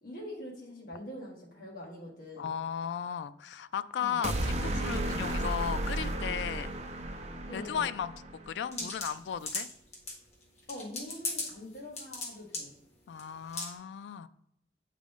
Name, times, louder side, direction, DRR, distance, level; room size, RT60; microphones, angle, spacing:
voice 1, 0.0-2.5 4.0-4.2 7.5-7.9 8.7-8.9 10.7-12.7, left 1 dB, 55° left, -4 dB, 1.5 m, -44 dB
voice 2, 2.4-6.7 7.5-8.1 8.5-9.7 13.1-14.3, left 8 dB, 80° left, 14 dB, 0.3 m, -35 dB
sound 1, 4.2-8.5, right 1 dB, 40° right, 0.6 m, -33 dB
sound 2, 8.7-10.1 10.7-11.5 11.7-12.3 12.5-12.6 13.2-13.3 13.5-13.7, left 3 dB, 40° left, 1.5 m, -35 dB
8.3 x 3.7 x 3.6 m, 0.79 s
head